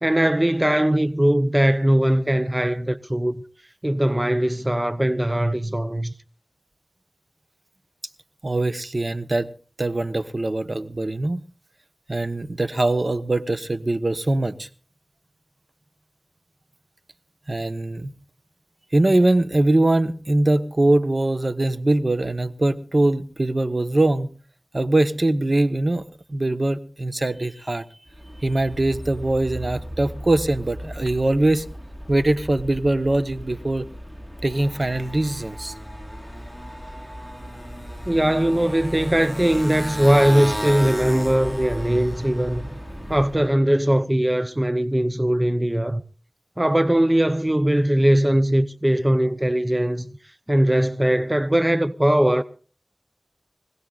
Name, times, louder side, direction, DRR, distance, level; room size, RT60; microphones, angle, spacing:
voice 1, 0.0-3.3 3.8-6.1 38.1-42.7 43.1-46.0 46.6-50.1 50.5-52.4, right 1 dB, 20° right, 0.8 m, -20 dB
voice 2, 8.4-9.5 9.8-11.4 12.1-14.7 17.5-18.1 18.9-24.3 24.7-26.0 26.3-27.8 28.4-31.6 32.1-33.9 34.4-35.7, right 2 dB, 55° right, 1.2 m, -22 dB
Motorcycle, 28.1-43.5, equal, 5° right, 4.7 m, -35 dB
24.5 x 17.5 x 2.5 m
wide cardioid pair, 50°, 0 cm